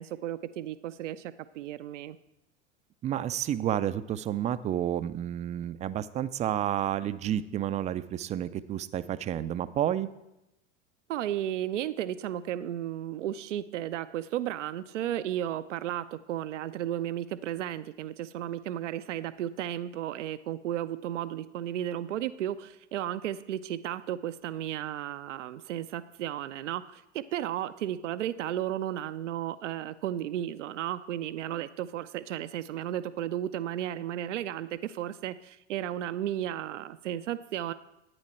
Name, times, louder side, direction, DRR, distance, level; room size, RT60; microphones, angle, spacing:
voice 1, 0.0-2.2 11.1-37.7, right 12 dB, 80° right, 13 dB, 0.5 m, -34 dB
voice 2, 3.0-10.1, right 11 dB, 20° right, 14 dB, 0.3 m, -30 dB
11.0 x 8.9 x 4.3 m, 0.89 s
hypercardioid pair, 85°, 36 cm